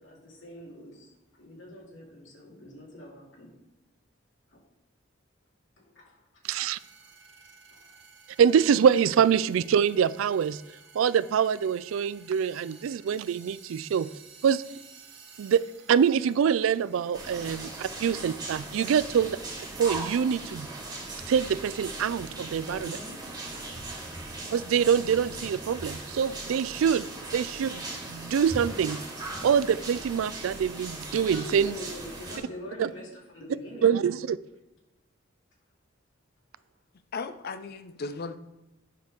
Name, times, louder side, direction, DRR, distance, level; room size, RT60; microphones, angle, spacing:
voice 1, 0.0-3.5 4.5-4.6 5.9-6.2 7.0-7.1 7.7-7.9 13.0-13.2 15.3-15.5 22.6-23.3 31.1-34.0, left 1 dB, 70° left, -3 dB, 2.5 m, -44 dB
sound 1, 6.4-18.6, right 5 dB, 65° right, 1.7 m, -54 dB
voice 2, 6.4-6.8 8.4-10.6 10.9-14.1 14.4-14.6 15.4-15.6 15.9-19.4 19.8-20.7 21.3-23.0 24.5-27.1 27.3-29.0 29.4-31.7 32.8-32.9 33.8-34.4, right 7 dB, 90° right, 17 dB, 0.3 m, -25 dB
sound 2, 17.1-32.4, right 2 dB, 20° right, 1.7 m, -39 dB
voice 3, 37.1-38.4, left 4 dB, 50° left, 11 dB, 0.5 m, -36 dB
8.9 x 3.5 x 6.2 m, 0.99 s
head